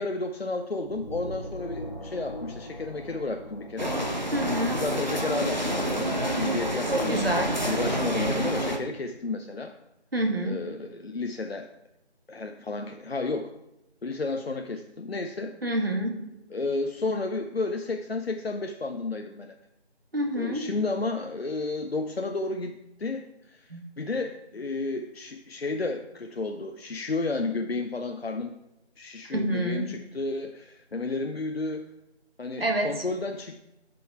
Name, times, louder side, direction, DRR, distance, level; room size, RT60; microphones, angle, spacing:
voice 1, 0.0-4.0 4.8-9.7 10.4-11.7 12.3-13.5 14.0-15.5 16.5-19.6 20.4-28.6 29.0-31.8 32.4-33.6, left 3 dB, 65° left, 5 dB, 0.6 m, -32 dB
sound 1, 0.8-4.7, equal, 40° left, 1.7 m, -40 dB
sound 2, 3.8-8.8, right 1 dB, 45° right, 0.8 m, -28 dB
voice 2, 4.3-4.8 6.9-7.6 10.1-10.6 15.6-16.1 20.1-20.7 23.7-23.8 29.3-29.9 32.6-32.9, right 1 dB, 60° right, 2 dB, 1.5 m, -27 dB
6.4 x 5.4 x 4.5 m, 0.90 s
figure-of-eight pair, 180°, 33 cm